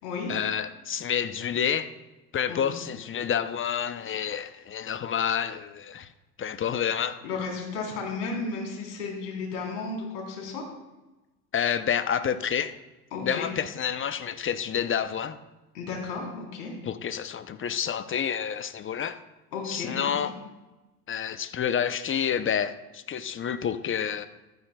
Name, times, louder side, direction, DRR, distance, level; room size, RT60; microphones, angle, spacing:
voice 1, 0.3-1.9 2.3-6.1 6.4-7.2 11.5-12.7 13.2-15.4 16.8-19.2 19.6-20.4 21.1-24.3, left 8 dB, 25° left, 0.6 m, -29 dB
voice 2, 7.2-10.7 13.1-13.5 15.7-16.7 19.5-20.3, left 4 dB, 80° left, 3.8 m, -34 dB
14.5 x 12.5 x 2.3 m
hypercardioid pair, 85°, 46 cm